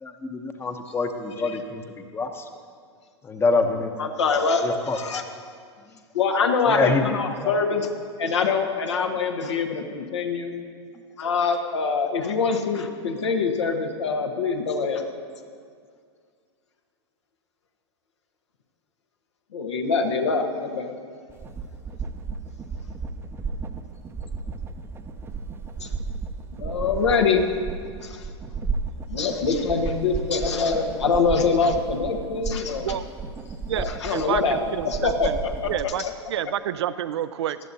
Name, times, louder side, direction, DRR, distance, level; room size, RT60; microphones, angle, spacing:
voice 1, 0.0-2.4 3.2-3.9 4.6-5.3 6.7-7.2 7.4-7.6, left 3 dB, 15° left, 7 dB, 0.9 m, -26 dB
voice 2, 4.0-5.2 6.1-7.9 8.2-10.5 11.2-15.0 19.5-20.9 25.8-25.9 26.5-27.5 28.0-28.3 29.1-32.9 33.7-34.6 34.8-36.1, left 4 dB, 75° left, 3 dB, 1.3 m, -24 dB
sound 1, 21.3-35.8, right 4 dB, 15° right, 0.6 m, -33 dB
voice 3, 33.7-35.4 35.6-37.6, right 11 dB, 65° right, 13 dB, 0.5 m, -29 dB
18.0 x 12.0 x 2.8 m, 2.1 s
figure-of-eight pair, 100°, 15 cm